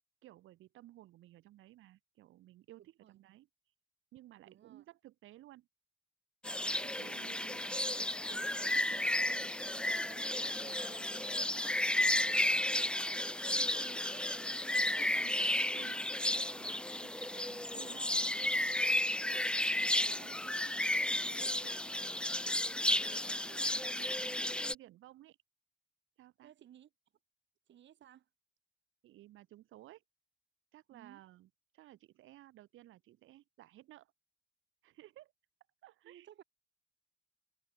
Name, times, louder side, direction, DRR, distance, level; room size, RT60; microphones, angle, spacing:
voice 1, 0.2-3.5 4.1-5.7 6.8-7.8 8.3-9.8 10.1-12.9 13.5-18.3 19.1-19.5 20.0-22.4 22.9-25.4 26.2-26.5 29.0-30.0 30.7-34.1 34.8-35.3 35.8-36.4, right 15 dB, 85° right, 2.9 m, -57 dB
voice 2, 4.4-4.8 6.9-7.3 26.4-26.9 27.7-28.3 30.9-31.2 36.0-36.4, right 11 dB, 65° right, 2.6 m, -58 dB
sound 1, 6.4-24.7, left 1 dB, 5° left, 0.5 m, -33 dB
cardioid pair, 90°, 20 cm